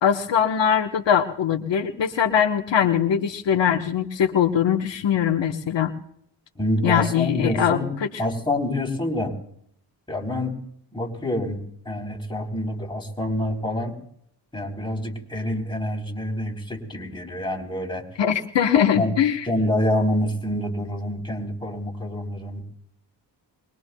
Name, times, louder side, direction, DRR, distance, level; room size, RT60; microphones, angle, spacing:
voice 1, 0.0-5.9 6.8-7.8 18.2-19.5, left 8 dB, 75° left, 4 dB, 1.3 m, -21 dB
voice 2, 6.6-7.9 8.2-9.4 10.1-10.6 10.9-14.0 14.5-18.0 18.9-19.1 19.4-22.6, left 1 dB, 10° left, 1 dB, 3.9 m, -27 dB
24.0 x 21.5 x 2.3 m, 0.67 s
cardioid pair, 80°, 44 cm